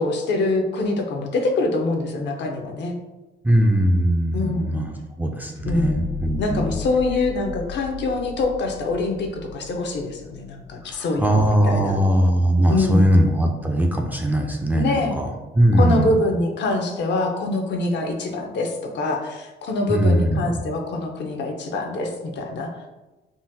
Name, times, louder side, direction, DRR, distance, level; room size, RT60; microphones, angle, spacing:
voice 1, 0.0-2.9 4.3-4.8 5.7-6.1 6.4-12.0 12.7-13.1 14.7-15.1 15.8-22.8, left 2 dB, 65° left, 3 dB, 0.5 m, -24 dB
voice 2, 3.4-6.7 10.9-15.3 15.5-16.1 19.9-20.6, right 1 dB, 10° right, 2 dB, 0.3 m, -20 dB
sound 1, 5.5-12.6 13.0-13.1, left 8 dB, 85° left, 1.2 m, -36 dB
3.7 x 2.0 x 2.6 m, 1.1 s
cardioid pair, 90°, 20 cm